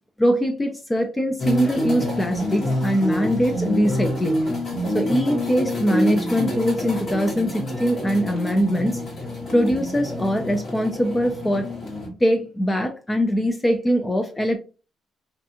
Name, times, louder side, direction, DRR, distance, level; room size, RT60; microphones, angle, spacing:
voice 1, 0.2-4.4 4.9-9.0 9.5-11.7 12.2-14.6, equal, 15° left, 4 dB, 0.4 m, -22 dB
sound 1, 1.4-12.1, left 1 dB, 45° left, 1.1 m, -27 dB
2.6 x 2.3 x 2.7 m, 0.34 s
cardioid pair, 90°, 0 cm